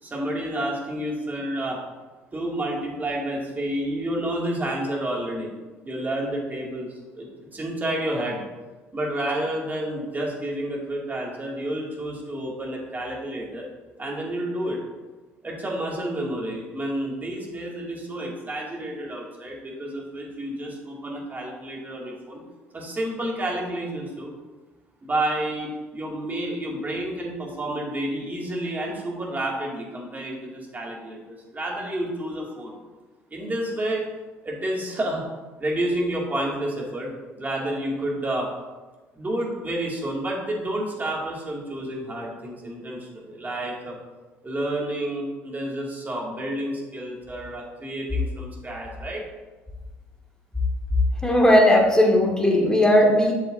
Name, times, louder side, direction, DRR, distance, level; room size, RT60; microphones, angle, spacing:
voice 1, 0.0-1.8 2.3-5.5 5.8-8.4 8.9-13.7 14.0-14.8 15.4-22.4 22.7-24.3 25.0-32.8 33.3-34.0 34.4-35.2 35.6-37.1 37.4-38.5 39.2-44.0 44.4-49.2, right 1 dB, 25° right, -2 dB, 2.2 m, -30 dB
voice 2, 51.2-53.3, left 1 dB, 10° left, -1 dB, 1.7 m, -17 dB
8.1 x 6.8 x 2.6 m, 1.2 s
hypercardioid pair, 55°, 7 cm